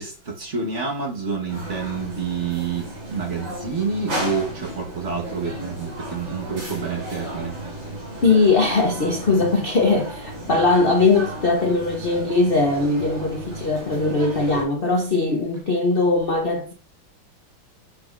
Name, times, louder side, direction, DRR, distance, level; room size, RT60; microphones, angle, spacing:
voice 1, 0.0-7.6, right 5 dB, 40° right, 1.3 m, -28 dB
sound 1, 1.5-14.6, right 1 dB, 65° right, 4.0 m, -34 dB
voice 2, 8.2-16.7, left 3 dB, 65° left, 0.5 m, -20 dB
8.8 x 5.1 x 2.5 m
omnidirectional pair, 2.2 m